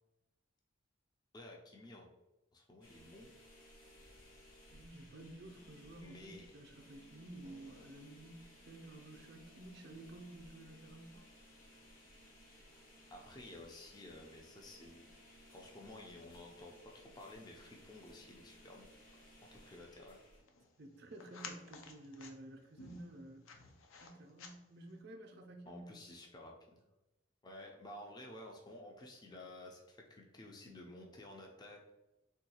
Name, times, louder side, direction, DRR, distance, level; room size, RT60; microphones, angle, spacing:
voice 1, 1.3-2.1 2.5-3.3 6.0-6.5 13.1-15.2 15.5-18.9 19.5-20.2 25.7-26.8 27.4-31.9, left 1 dB, 20° left, 0 dB, 0.3 m, -53 dB
sound 1, 2.8-20.4, equal, 45° left, 0.7 m, -60 dB
voice 2, 4.7-11.3 20.8-23.5 24.0-25.9, right 1 dB, 55° right, 3 dB, 0.4 m, -52 dB
sound 2, 5.6-25.0, left 4 dB, 85° left, 0.4 m, -60 dB
3.6 x 2.3 x 2.8 m, 0.97 s
head